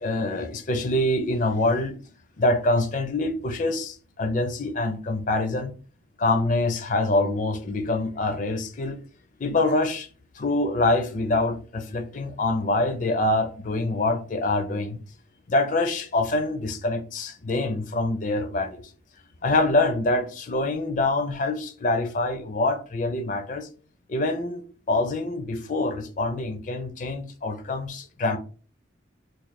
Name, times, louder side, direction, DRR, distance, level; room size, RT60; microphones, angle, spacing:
voice 1, 0.0-1.9 2.4-5.7 6.2-9.0 9.4-10.1 10.4-15.0 15.5-18.8 19.4-23.7 24.1-28.4, left 2 dB, 40° left, 0.4 m, -25 dB
3.0 x 2.5 x 4.1 m
head